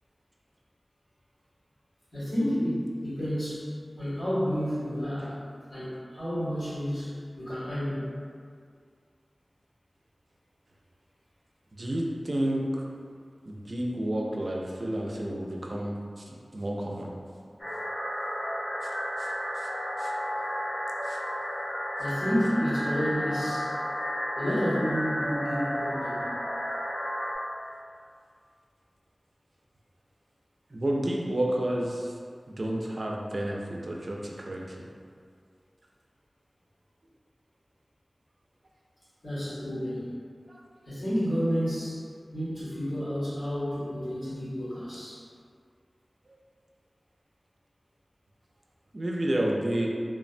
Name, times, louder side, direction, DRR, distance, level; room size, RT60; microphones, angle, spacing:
voice 1, 2.1-3.7 4.0-5.4 5.7-8.1 22.0-23.7 24.3-26.3 39.2-40.1 40.8-42.0 42.3-45.2, equal, 85° left, -12 dB, 1.5 m, -30 dB
voice 2, 11.8-12.8 13.5-15.9 16.5-17.1 20.0-20.1 21.1-21.2 30.7-32.1 32.5-34.6 40.5-40.6 48.9-49.9, right 1 dB, 55° right, -2 dB, 0.3 m, -30 dB
sound 1, 17.6-27.3, equal, 35° left, 0.7 m, -32 dB
3.2 x 2.1 x 2.4 m, 2.1 s
wide cardioid pair, 70°, 0 cm